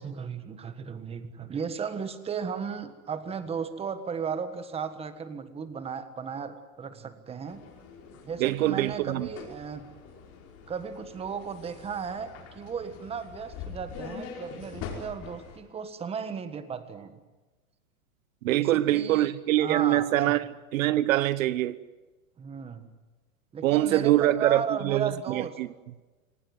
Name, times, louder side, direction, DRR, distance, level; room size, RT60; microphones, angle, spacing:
voice 1, 0.0-7.6 8.3-9.9 10.7-17.2 18.5-20.1 22.4-22.9 23.5-25.6, right 6 dB, 15° right, 1.5 m, -35 dB
sound 1, 7.5-15.6, left 5 dB, 35° left, 5.6 m, -44 dB
voice 2, 8.4-9.3 18.4-20.4 20.7-21.8 23.6-25.7, right 14 dB, 65° right, 1.0 m, -24 dB
26.0 x 18.0 x 9.6 m
supercardioid pair, 145°, 43 cm